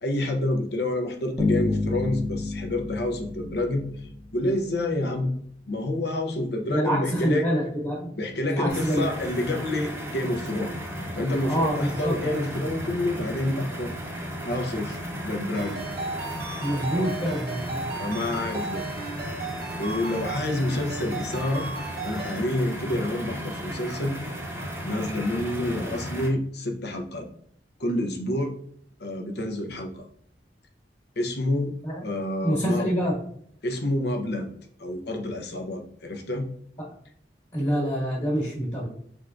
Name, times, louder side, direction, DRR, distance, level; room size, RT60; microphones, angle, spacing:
voice 1, 0.0-3.9 4.3-5.3 5.7-7.5 8.2-10.7 11.1-13.9 14.4-15.8 16.9-17.1 18.0-18.9 19.8-21.7 22.0-24.2 24.8-27.3 27.8-28.6 29.0-30.1 31.2-31.7 32.0-32.9 33.6-34.5 34.8-36.5, left 1 dB, 65° left, 4 dB, 0.7 m, -28 dB
Bass guitar, 1.4-4.5, left 3 dB, 15° left, 0.8 m, -30 dB
voice 2, 6.7-8.1 8.5-9.1 11.4-12.1 16.6-17.8 31.8-32.0 32.4-33.2 36.8-36.9 37.5-38.9, equal, 30° left, -6 dB, 1.5 m, -26 dB
sound 1, 8.7-26.3, equal, 15° right, 0.8 m, -35 dB
Ringtone, 15.5-22.4, right 3 dB, 60° right, 0.9 m, -36 dB
4.5 x 3.7 x 2.5 m, 0.64 s
head